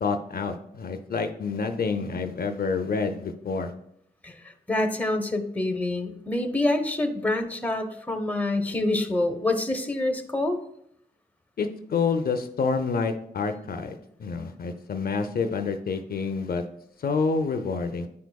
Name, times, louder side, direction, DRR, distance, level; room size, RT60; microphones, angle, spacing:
voice 1, 0.0-3.7 11.6-16.6 17.0-18.1, left 5 dB, 60° left, 6 dB, 0.5 m, -28 dB
voice 2, 4.2-10.6, left 2 dB, 10° left, 6 dB, 0.7 m, -26 dB
9.6 x 4.6 x 2.2 m, 0.72 s
wide cardioid pair, 85°, 18 cm